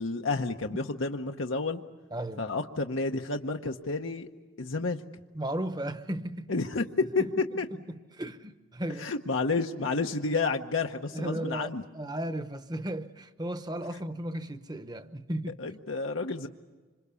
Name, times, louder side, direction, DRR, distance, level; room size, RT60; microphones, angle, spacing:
voice 1, 0.0-1.8 2.4-4.3 4.6-5.0 6.5-6.8 7.1-7.2 7.6-7.7 9.0-11.8 15.6-16.5, left 3 dB, 75° left, 1.0 m, -30 dB
voice 2, 2.1-2.5 5.3-6.5 7.2-7.3 7.9-9.1 11.1-15.8, right 1 dB, 20° right, 1.0 m, -35 dB
27.0 x 26.0 x 7.0 m
head